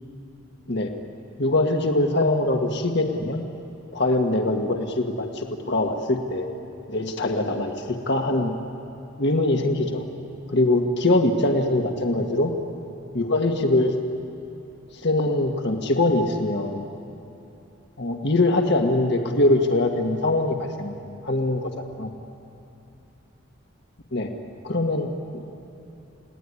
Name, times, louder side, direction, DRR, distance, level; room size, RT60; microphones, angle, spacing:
voice 1, 1.4-3.4 3.9-6.5 6.9-8.5 9.2-10.0 10.5-12.5 13.1-13.9 15.0-16.8 18.0-22.1 24.1-24.3 24.6-25.4, left 2 dB, 55° left, 3 dB, 1.6 m, -23 dB
30.0 x 18.0 x 9.8 m, 2.8 s
head